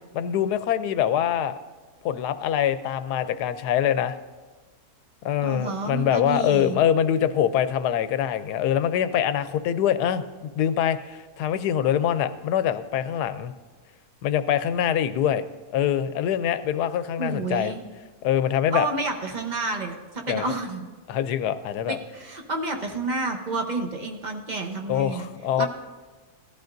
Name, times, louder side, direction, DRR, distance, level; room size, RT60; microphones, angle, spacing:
voice 1, 0.1-1.6 2.0-4.2 5.2-13.5 14.2-15.4 15.7-17.7 18.2-18.9 20.3-20.4 21.1-22.0 24.9-25.7, left 9 dB, 90° left, 12 dB, 1.2 m, -24 dB
voice 2, 5.4-6.8 17.2-17.8 18.7-20.9 21.9-25.3 25.6-25.7, right 3 dB, 35° right, 4 dB, 0.9 m, -30 dB
17.0 x 12.0 x 2.6 m, 1.3 s
omnidirectional pair, 1.7 m